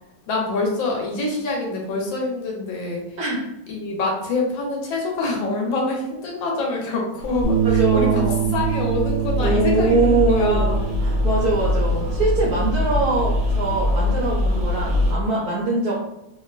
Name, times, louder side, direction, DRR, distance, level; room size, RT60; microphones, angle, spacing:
voice 1, 0.2-3.2 3.7-10.9, left 2 dB, 75° left, -1 dB, 1.4 m, -26 dB
sound 1, 7.2-15.1, left 3 dB, 40° right, 1.1 m, -28 dB
Bass guitar, 7.4-13.7, right 10 dB, 55° left, 1.0 m, -26 dB
voice 2, 7.6-8.5 9.4-15.9, right 3 dB, 65° right, -5 dB, 0.9 m, -23 dB
sound 2, 9.2-15.3, left 1 dB, 10° right, 0.8 m, -24 dB
3.0 x 2.9 x 2.4 m, 0.89 s
omnidirectional pair, 2.2 m